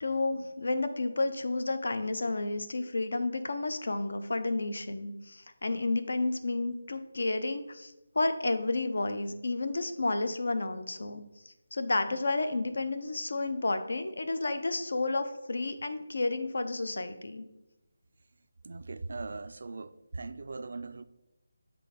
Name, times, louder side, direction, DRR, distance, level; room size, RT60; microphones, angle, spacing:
voice 1, 0.0-17.5, left 2 dB, 70° left, 10 dB, 0.6 m, -31 dB
voice 2, 18.6-21.0, right 3 dB, 55° right, 13 dB, 0.3 m, -40 dB
6.1 x 3.3 x 5.0 m, 0.97 s
figure-of-eight pair, 170°, 0 cm